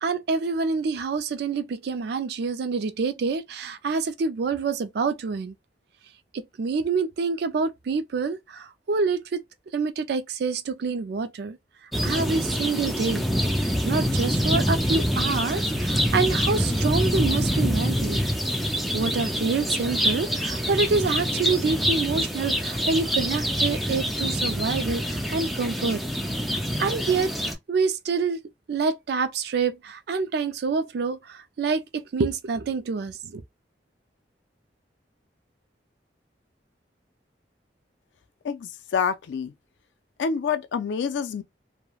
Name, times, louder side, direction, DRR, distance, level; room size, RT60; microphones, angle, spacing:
voice 1, 0.0-5.5 6.6-9.4 9.7-11.6 12.0-13.2 13.6-18.2 18.9-26.0 26.8-28.4 28.7-33.4, right 4 dB, 65° right, 0.4 m, -27 dB
sound 1, 11.9-27.5, equal, ahead, 0.4 m, -25 dB
voice 2, 38.4-39.5 40.2-41.4, left 6 dB, 85° left, 0.4 m, -27 dB
3.1 x 2.1 x 2.3 m
head